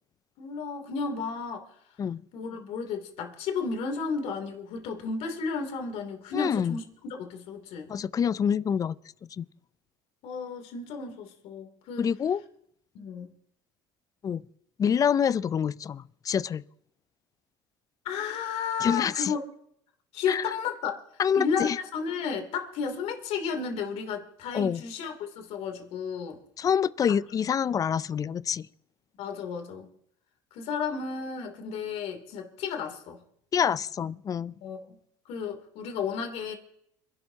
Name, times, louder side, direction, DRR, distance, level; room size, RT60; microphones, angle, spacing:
voice 1, 0.4-1.7 2.3-7.9 10.2-12.1 12.9-13.3 18.0-19.4 20.1-21.0 21.3-26.4 27.4-27.5 29.2-29.9 30.5-33.2 34.6-35.0 35.3-36.5, left 5 dB, 65° left, 3.0 m, -33 dB
voice 2, 6.3-6.8 7.9-9.0 9.4-9.5 12.0-12.4 14.2-14.4 14.8-16.6 18.8-19.3 20.3-20.4 21.2-21.8 24.5-24.8 26.6-28.6 33.5-34.5, left 7 dB, 30° left, 0.4 m, -26 dB
27.0 x 12.0 x 2.9 m
supercardioid pair, 105°, 12 cm